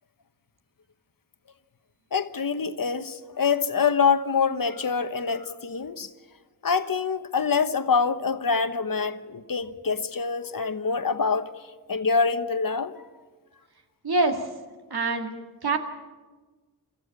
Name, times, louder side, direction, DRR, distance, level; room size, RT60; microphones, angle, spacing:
voice 1, 2.1-6.1 6.6-11.5 11.9-12.9, left 5 dB, 60° left, 1.1 m, -25 dB
voice 2, 14.0-14.5 14.9-15.3 15.6-15.8, right 3 dB, 80° right, 2.2 m, -24 dB
24.5 x 14.5 x 8.3 m
cardioid pair, 50°, 37 cm